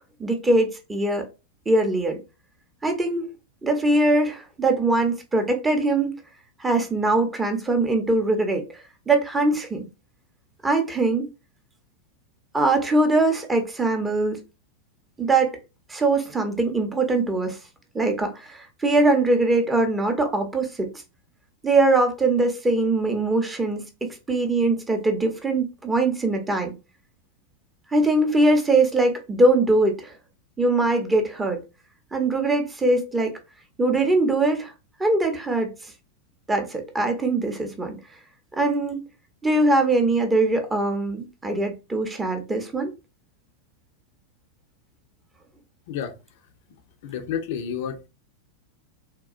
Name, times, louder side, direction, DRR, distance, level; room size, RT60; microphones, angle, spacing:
voice 1, 0.2-1.3 1.7-2.2 2.8-3.3 3.6-6.1 6.6-8.6 9.1-9.9 10.6-11.3 12.5-14.4 15.2-15.6 15.9-17.6 17.9-20.9 21.6-23.8 24.3-26.7 27.9-30.1 30.6-31.6 32.1-33.3 33.8-34.7 35.0-35.7 36.5-38.0 38.6-39.0 39.4-42.9, right 2 dB, 15° right, 0.6 m, -22 dB
voice 2, 47.0-48.1, left 8 dB, 50° left, 0.5 m, -30 dB
3.6 x 2.3 x 2.4 m
figure-of-eight pair, 90°, 0 cm